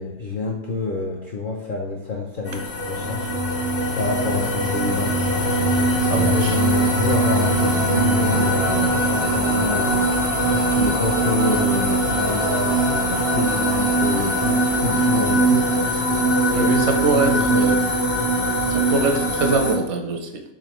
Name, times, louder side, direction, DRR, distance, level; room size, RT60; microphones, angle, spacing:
voice 1, 0.0-3.3 4.0-5.2 6.1-10.1 10.5-15.7 16.5-16.8 17.3-17.6, left 3 dB, 70° left, 0 dB, 0.4 m, -27 dB
sound 1, 2.5-19.8, right 1 dB, 50° left, 0.8 m, -21 dB
voice 2, 6.1-6.6 16.5-17.8 18.7-20.4, right 3 dB, 85° right, 5 dB, 1.1 m, -23 dB
sound 2, 6.4-17.4, right 6 dB, 65° right, 0.6 m, -35 dB
4.2 x 3.9 x 3.0 m, 0.87 s
omnidirectional pair, 1.4 m